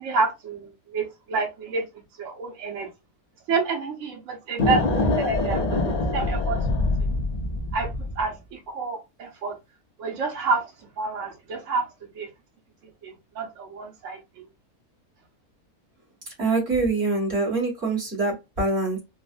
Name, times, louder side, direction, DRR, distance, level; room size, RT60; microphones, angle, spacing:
voice 1, 0.0-1.8 2.2-2.9 3.5-6.6 7.7-7.9 8.2-9.5 10.0-10.7 11.0-11.9 12.1-12.3 13.0-14.4, right 4 dB, 60° right, 1.1 m, -29 dB
sound 1, 4.6-8.3, left 2 dB, 60° left, 0.4 m, -24 dB
voice 2, 16.4-19.0, right 3 dB, 45° right, 1.6 m, -24 dB
3.8 x 2.0 x 2.4 m
omnidirectional pair, 1.6 m